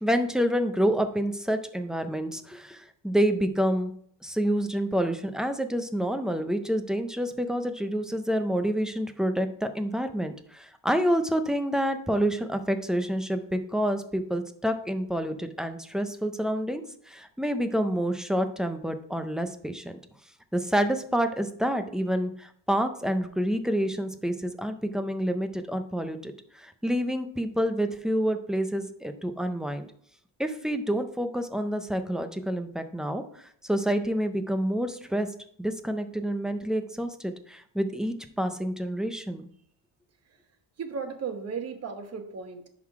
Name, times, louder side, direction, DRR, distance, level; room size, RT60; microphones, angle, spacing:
voice 1, 0.0-3.9 4.2-16.8 17.1-20.0 20.5-29.9 30.4-35.3 35.6-39.5, equal, ahead, 8 dB, 0.4 m, -28 dB
voice 2, 40.8-42.7, right 5 dB, 35° right, 6 dB, 1.1 m, -35 dB
10.5 x 3.8 x 4.7 m, 0.62 s
cardioid pair, 155°, 43 cm